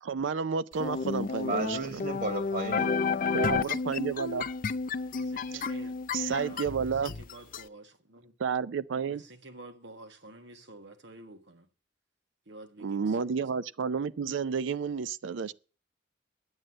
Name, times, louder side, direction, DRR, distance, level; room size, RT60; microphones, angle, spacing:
voice 1, 0.0-2.0 3.3-4.5 5.5-5.7 6.1-7.1 8.4-9.2 12.8-15.5, right 6 dB, 85° right, 0.5 m, -31 dB
sound 1, 0.8-7.6, left 5 dB, 50° left, 0.5 m, -31 dB
voice 2, 1.4-2.9, right 2 dB, 50° right, 2.5 m, -33 dB
voice 3, 5.1-6.6 7.3-8.3 9.1-9.2 9.4-11.6 12.5-13.0, right 2 dB, 70° right, 1.6 m, -49 dB
9.6 x 8.0 x 7.5 m
head